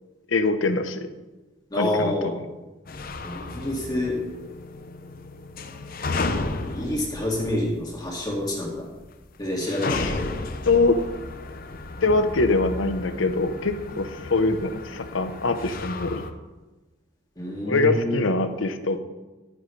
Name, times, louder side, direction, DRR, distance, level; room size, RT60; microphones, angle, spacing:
voice 1, 0.3-1.1 1.7-2.4 9.8-10.2 10.7-11.0 12.0-16.2 17.7-19.0, left 3 dB, 80° left, 9 dB, 0.8 m, -23 dB
voice 2, 1.7-2.3 3.2-4.1 6.7-8.8 9.4-10.3 14.3-14.4 17.4-18.2, left 1 dB, 20° left, -3 dB, 2.1 m, -27 dB
sound 1, 2.8-8.4 8.6-8.7 9.5-16.3, left 3 dB, 45° left, 0.7 m, -34 dB
11.0 x 10.0 x 3.2 m, 1.2 s
head